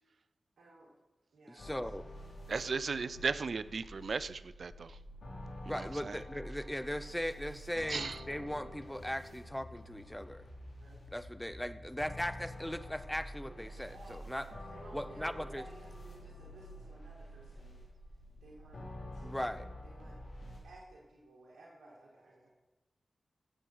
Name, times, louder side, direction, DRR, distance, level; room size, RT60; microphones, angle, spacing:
voice 1, 0.6-0.9 1.3-2.1 10.8-11.1 13.4-13.6 13.9-17.8 18.4-18.9 19.1-19.6 19.8-20.2 20.6-22.5, right 2 dB, 85° right, -5 dB, 2.4 m, -56 dB
voice 2, 1.5-2.0 5.7-10.4 11.1-14.5 14.9-15.6 19.2-19.7, equal, 10° left, 13 dB, 0.7 m, -38 dB
sound 1, 1.6-20.6, left 1 dB, 70° left, 3.9 m, -48 dB
voice 3, 2.5-5.0 5.6-6.2 7.9-8.2, right 4 dB, 70° right, 16 dB, 0.4 m, -36 dB
16.5 x 7.0 x 4.7 m, 1.1 s
cardioid pair, 45°, 0 cm